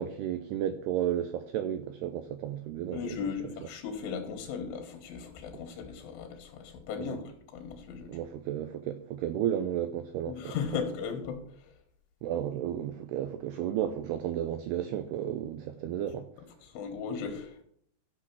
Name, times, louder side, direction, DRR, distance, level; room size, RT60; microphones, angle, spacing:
voice 1, 0.0-3.0 7.1-7.2 8.1-10.6 12.2-16.3, right 10 dB, 90° right, 2.3 m, -33 dB
voice 2, 2.9-8.2 10.3-11.7 16.6-17.6, left 6 dB, 80° left, 3.8 m, -37 dB
12.5 x 6.1 x 6.1 m
omnidirectional pair, 5.4 m